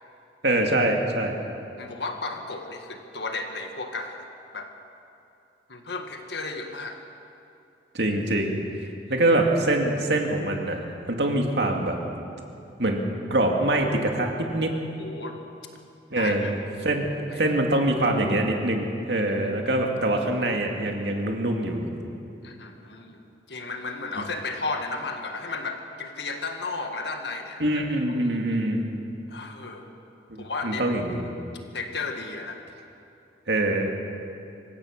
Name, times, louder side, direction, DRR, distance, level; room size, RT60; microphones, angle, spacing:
voice 1, 0.4-1.4 7.9-8.6 9.1-10.8 11.1-12.0 12.8-13.0 13.3-14.7 16.1-16.5 16.8-17.1 17.4-22.0 27.6-28.8 30.3-31.3 33.5-33.9, right 1 dB, 70° right, 2 dB, 2.5 m, -24 dB
voice 2, 1.8-4.3 4.5-4.7 5.7-7.0 14.9-15.4 16.2-16.5 17.3-17.4 22.4-27.6 28.1-28.3 29.3-29.9 30.4-30.8 31.7-32.6, left 3 dB, 70° left, 4 dB, 1.8 m, -34 dB
25.0 x 16.0 x 6.6 m, 2.7 s
head